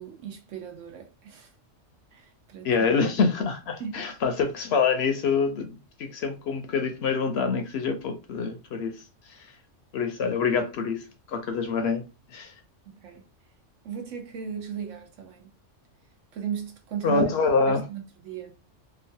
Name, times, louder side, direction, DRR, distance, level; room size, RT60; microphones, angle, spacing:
voice 1, 0.0-1.5 2.1-2.7 3.8-4.1 12.9-13.2 13.8-15.5 16.3-17.3 17.7-18.5, right 8 dB, 80° right, 1.1 m, -36 dB
voice 2, 2.6-8.9 9.3-9.5 9.9-12.0 12.3-12.5 17.0-17.8, left 5 dB, 65° left, 0.8 m, -26 dB
3.0 x 2.3 x 2.7 m
omnidirectional pair, 1.3 m